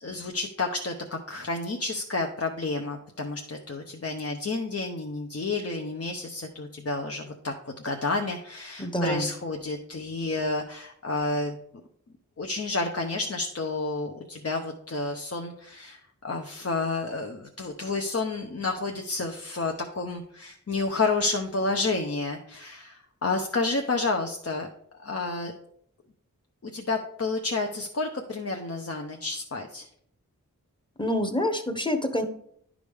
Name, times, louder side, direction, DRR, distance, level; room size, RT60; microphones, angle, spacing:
voice 1, 0.0-11.6 12.4-24.7 25.0-25.5 26.6-29.9, left 3 dB, 45° left, 2 dB, 0.7 m, -30 dB
voice 2, 8.8-9.3 31.0-32.2, left 1 dB, 15° left, 6 dB, 0.9 m, -27 dB
10.5 x 5.0 x 3.5 m, 0.68 s
wide cardioid pair, 65°, 33 cm